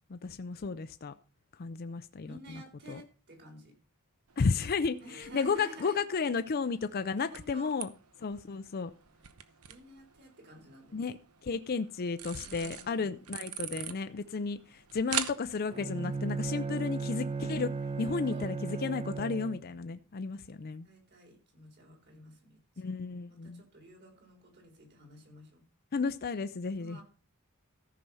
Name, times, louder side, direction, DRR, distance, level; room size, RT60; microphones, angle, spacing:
voice 1, 0.1-1.1 1.6-2.6 2.9-3.0 4.4-7.9 8.2-8.9 10.9-17.7 18.0-20.9 22.8-23.6 25.9-27.0, left 4 dB, 45° left, 0.5 m, -33 dB
voice 2, 2.2-3.7 5.0-6.0 7.3-7.7 9.7-11.0 12.4-13.2 18.3-18.5 20.8-22.9 23.3-25.6 26.8-27.0, equal, 50° right, 4.0 m, -51 dB
sound 1, 4.3-18.4, right 10 dB, 80° right, 1.0 m, -45 dB
Bowed string instrument, 15.7-19.8, right 4 dB, 25° right, 0.8 m, -36 dB
14.0 x 5.9 x 5.5 m
head